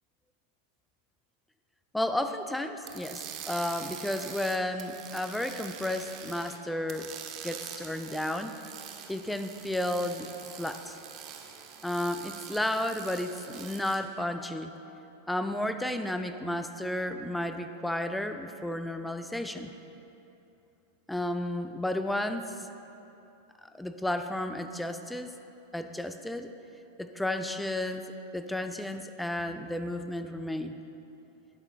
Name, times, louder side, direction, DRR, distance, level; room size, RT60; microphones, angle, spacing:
voice 1, 1.9-7.1 7.4-8.6 9.1-10.3 10.6-11.0 11.8-14.7 15.3-19.7 21.1-22.7 23.6-25.3 25.7-26.5 27.0-30.8, left 1 dB, 5° left, 8 dB, 0.5 m, -32 dB
sound 1, 2.8-6.6 6.9-14.0, right 8 dB, 35° right, 1.0 m, -44 dB
19.5 x 10.5 x 2.3 m, 2.9 s
figure-of-eight pair, 90°, 0 cm